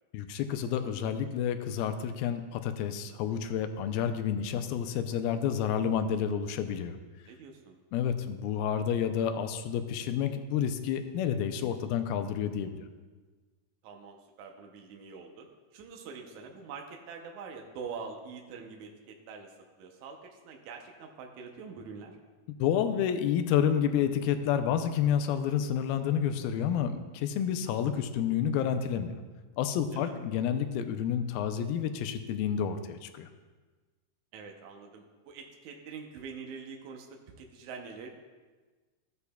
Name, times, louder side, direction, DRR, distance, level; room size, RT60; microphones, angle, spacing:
voice 1, 0.1-7.0 7.9-12.8 22.6-29.2 29.6-33.3, left 8 dB, 80° left, 8 dB, 2.4 m, -29 dB
voice 2, 7.3-7.8 13.8-19.5 19.8-22.2 29.9-30.2 34.3-38.1, right 5 dB, 80° right, 2 dB, 1.7 m, -45 dB
14.5 x 8.2 x 2.3 m, 1.3 s
omnidirectional pair, 4.3 m